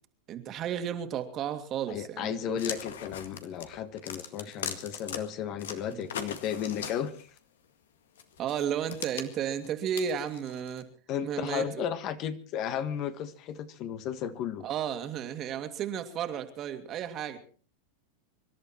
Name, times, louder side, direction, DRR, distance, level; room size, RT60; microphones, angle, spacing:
voice 1, 0.3-2.6 5.9-6.0 8.4-10.8 11.2-11.8 14.6-17.4, right 9 dB, 40° right, 7 dB, 2.3 m, -33 dB
voice 2, 1.9-7.3 11.1-14.7, left 9 dB, 45° left, 11 dB, 1.5 m, -34 dB
sound 1, 2.6-5.2 5.6-7.4 8.2-10.8, left 8 dB, 80° left, 1.9 m, -39 dB
25.5 x 11.5 x 4.5 m, 0.41 s
hypercardioid pair, 105°, 0 cm